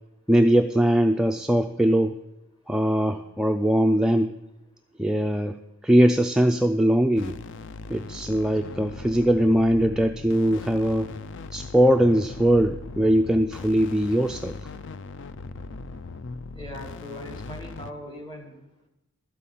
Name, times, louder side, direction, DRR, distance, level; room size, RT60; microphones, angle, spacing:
voice 1, 0.3-2.2 2.7-4.3 5.0-5.5 5.8-7.4 7.9-11.1 11.5-14.5, right 1 dB, 5° right, 4 dB, 0.3 m, -21 dB
sound 1, 7.2-17.9, left 3 dB, 60° left, 0.5 m, -39 dB
voice 2, 16.5-18.6, left 1 dB, 20° left, 3 dB, 2.0 m, -40 dB
13.0 x 5.6 x 8.4 m, 0.91 s
head